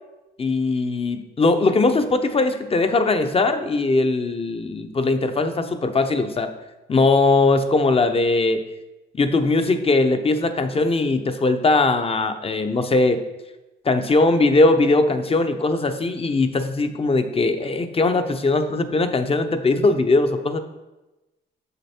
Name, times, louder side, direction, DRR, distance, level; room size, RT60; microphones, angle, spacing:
voice 1, 0.4-6.5 6.9-8.6 9.1-13.2 13.8-20.6, left 3 dB, 30° left, 8 dB, 0.8 m, -20 dB
7.0 x 6.8 x 4.4 m, 1.0 s
cardioid pair, 90°, 20 cm